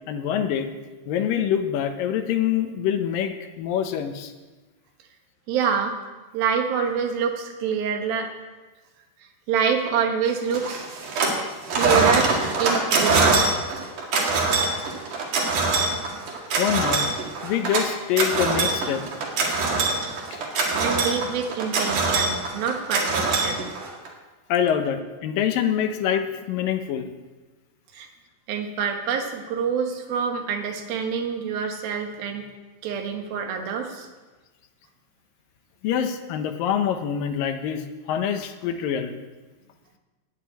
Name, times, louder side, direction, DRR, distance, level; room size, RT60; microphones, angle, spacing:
voice 1, 0.1-0.7 1.1-4.3 16.6-17.1 17.4-19.0 20.3-20.4 20.7-20.8 24.5-27.1 35.8-39.2, left 9 dB, 75° left, 7 dB, 2.5 m, -25 dB
voice 2, 5.5-6.0 6.3-8.3 9.5-10.9 11.7-12.3 12.6-13.6 20.8-23.7 27.9-28.1 28.5-32.4 32.8-34.1, right 6 dB, 80° right, 4 dB, 3.2 m, -26 dB
sound 1, 10.5-11.4 11.7-24.1, right 3 dB, 60° right, 3.5 m, -23 dB
9.9 x 9.8 x 8.8 m, 1.2 s
omnidirectional pair, 4.2 m